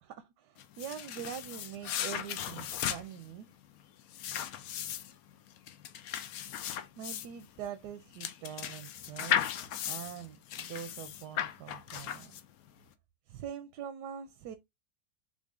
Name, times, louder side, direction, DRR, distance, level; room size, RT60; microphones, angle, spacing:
voice 1, 0.0-3.5 7.0-9.5 9.9-12.4 13.3-14.6, right 9 dB, 90° right, 1.2 m, -44 dB
sound 1, 0.6-12.7, left 10 dB, 70° left, 1.0 m, -37 dB
3.8 x 3.8 x 3.6 m
omnidirectional pair, 1.8 m